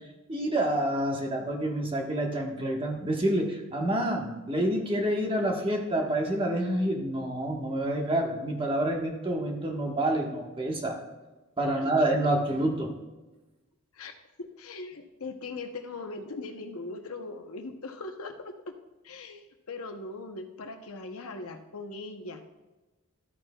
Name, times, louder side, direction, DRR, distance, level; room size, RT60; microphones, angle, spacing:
voice 1, 0.3-11.0 11.6-12.9, right 1 dB, 25° right, 0 dB, 1.3 m, -28 dB
voice 2, 14.4-18.5 19.0-22.5, left 3 dB, 70° left, 6 dB, 0.8 m, -40 dB
13.0 x 8.8 x 2.3 m, 1.1 s
head